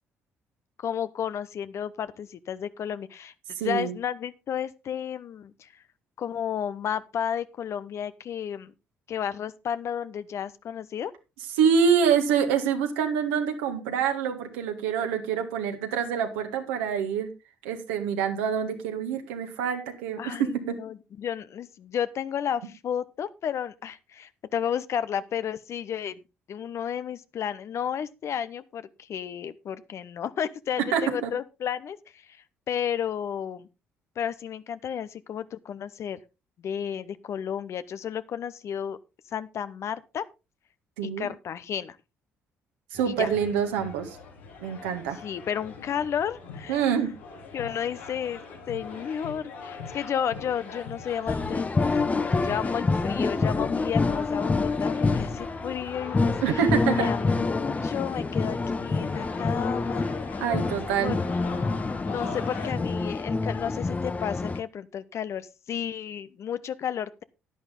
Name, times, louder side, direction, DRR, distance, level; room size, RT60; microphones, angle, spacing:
voice 1, 0.8-3.3 3.6-5.7 6.2-8.7 9.1-11.1 20.2-26.2 26.5-33.7 34.2-36.2 36.6-39.0 39.3-40.3 41.0-42.0 43.1-43.3 45.2-46.8 47.5-56.6 56.9-60.3 61.0-61.2 62.0-67.2, left 8 dB, 55° left, 15 dB, 0.9 m, -32 dB
voice 2, 3.6-3.9 11.6-17.3 17.6-20.8 30.9-31.3 41.0-41.3 42.9-44.2 44.6-45.2 46.7-47.1 56.4-57.1 60.4-61.2, right 7 dB, 80° right, 5 dB, 1.9 m, -26 dB
sound 1, 42.9-62.7, left 4 dB, 80° left, 3.6 m, -42 dB
sound 2, 51.3-64.6, left 3 dB, 25° left, 0.8 m, -27 dB
11.0 x 10.5 x 3.8 m, 0.27 s
hypercardioid pair, 50°, 6 cm